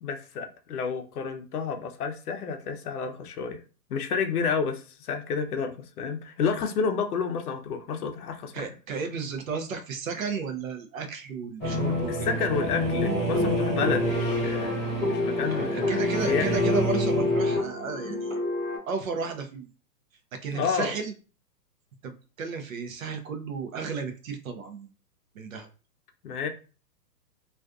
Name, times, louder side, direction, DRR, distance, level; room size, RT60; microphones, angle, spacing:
voice 1, 0.0-3.6 3.9-8.7 12.1-16.0 16.3-16.6 20.5-20.9 26.2-26.5, left 5 dB, 65° left, 0.6 m, -30 dB
voice 2, 8.5-12.4 15.5-18.3 18.9-19.7 20.4-21.1 22.0-24.9 25.3-25.7, right 5 dB, 55° right, 0.6 m, -33 dB
sound 1, 11.6-17.6, equal, 10° left, 0.4 m, -29 dB
sound 2, 13.0-18.8, left 2 dB, 25° right, 1.3 m, -28 dB
2.4 x 2.4 x 2.3 m
hypercardioid pair, 155°, 49 cm